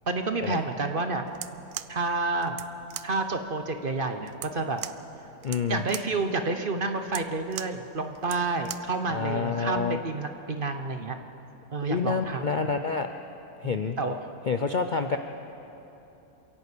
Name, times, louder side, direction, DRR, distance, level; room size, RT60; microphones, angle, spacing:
voice 1, 0.1-1.2 1.9-2.6 3.0-4.8 5.7-11.2 11.7-12.4 13.6-14.2, right 3 dB, 40° right, 6 dB, 1.0 m, -29 dB
sound 1, 1.3-9.0, right 12 dB, 85° right, 1.1 m, -41 dB
voice 2, 5.4-5.8 9.1-10.0 11.8-13.1 13.6-14.0 14.5-15.2, left 5 dB, 50° left, 6 dB, 0.6 m, -28 dB
27.5 x 11.5 x 8.4 m, 3.0 s
omnidirectional pair, 1.6 m